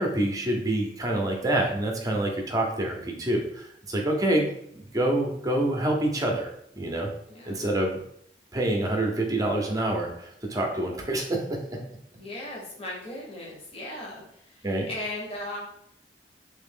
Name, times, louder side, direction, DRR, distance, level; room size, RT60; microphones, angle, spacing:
voice 1, 0.0-6.4 6.7-7.1 7.5-8.0 8.5-11.8 14.6-14.9, right 1 dB, 20° right, 2 dB, 0.7 m, -27 dB
voice 2, 7.3-7.7 12.2-15.6, left 1 dB, 35° left, -3 dB, 1.1 m, -38 dB
3.3 x 3.0 x 3.6 m, 0.69 s
head